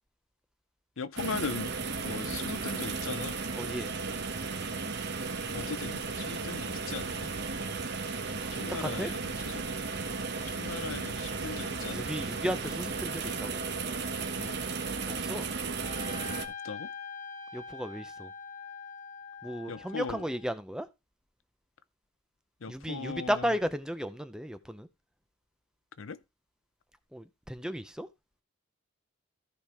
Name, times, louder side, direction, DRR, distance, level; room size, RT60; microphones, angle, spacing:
voice 1, 1.0-1.7 2.0-3.4 5.5-7.3 8.5-9.6 10.5-12.2 14.4-14.6 16.6-16.9 19.7-20.3 22.6-23.5 26.0-26.2, left 4 dB, 70° left, 0.6 m, -39 dB
sound 1, 1.2-16.5, right 4 dB, 55° right, 1.1 m, -35 dB
voice 2, 3.6-3.9 8.5-9.1 11.7-13.6 15.1-15.5 17.5-18.3 19.4-20.9 22.7-24.9 27.1-28.1, equal, 5° right, 0.5 m, -35 dB
Trumpet, 15.8-20.5, left 5 dB, 15° left, 2.0 m, -44 dB
14.0 x 5.0 x 3.5 m
head